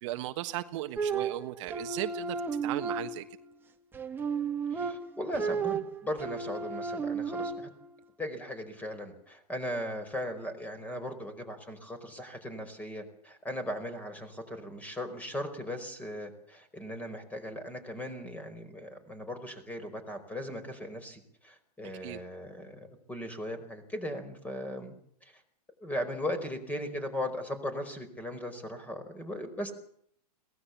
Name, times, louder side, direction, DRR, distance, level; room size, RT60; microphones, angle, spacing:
voice 1, 0.0-2.4 2.6-3.2 22.0-22.2, right 15 dB, 50° right, 7 dB, 1.5 m, -36 dB
sound 1, 1.0-3.5 3.9-7.9, right 5 dB, 10° right, 1.8 m, -33 dB
voice 2, 4.7-7.7 8.2-24.9 25.2-25.3 25.8-29.7, left 1 dB, 5° left, 10 dB, 4.8 m, -38 dB
22.5 x 18.5 x 7.2 m, 0.65 s
hypercardioid pair, 145°, 20 cm